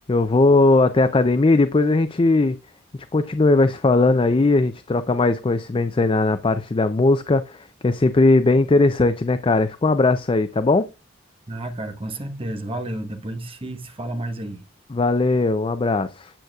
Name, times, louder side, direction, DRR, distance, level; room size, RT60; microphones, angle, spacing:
voice 1, 0.1-2.6 3.1-10.9 14.9-16.3, left 2 dB, 25° left, 0.4 m, -19 dB
voice 2, 11.5-14.6, right 1 dB, 30° right, 1.0 m, -31 dB
9.0 x 8.0 x 2.3 m
head